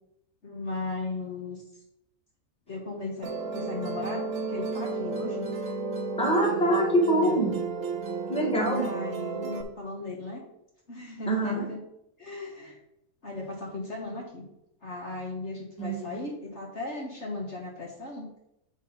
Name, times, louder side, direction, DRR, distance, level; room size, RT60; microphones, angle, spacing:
voice 1, 0.4-1.6 2.7-3.3 3.5-5.5 8.6-10.4 10.9-11.8 12.2-12.8 13.2-14.5 14.8-18.3, left 2 dB, 50° left, -1 dB, 1.5 m, -36 dB
Musical instrument, 3.2-9.6, right 4 dB, 60° right, 1.2 m, -32 dB
voice 2, 6.2-7.6 8.3-8.9 11.3-11.6 15.8-16.2, right 1 dB, 5° left, -2 dB, 1.6 m, -25 dB
8.1 x 3.7 x 5.5 m, 0.82 s
omnidirectional pair, 1.6 m